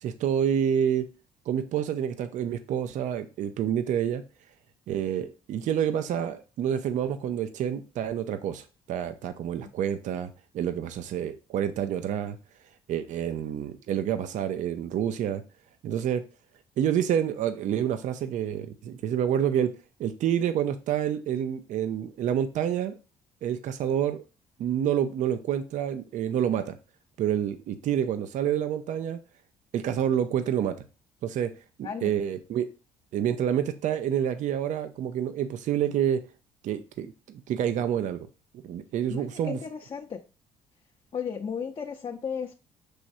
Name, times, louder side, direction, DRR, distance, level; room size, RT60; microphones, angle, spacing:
voice 1, 0.0-1.1 1.5-4.2 4.9-12.4 12.9-15.4 15.8-16.2 16.8-19.7 20.0-23.0 23.4-24.2 24.6-26.8 27.2-29.2 29.7-30.7 31.2-31.5 31.8-32.7 33.1-36.2 36.6-38.3 38.5-39.6, right 9 dB, 65° right, 0.5 m, -28 dB
voice 2, 39.1-40.2 41.1-42.5, left 7 dB, 35° left, 0.6 m, -34 dB
6.2 x 3.1 x 2.6 m
supercardioid pair, 70°, 14 cm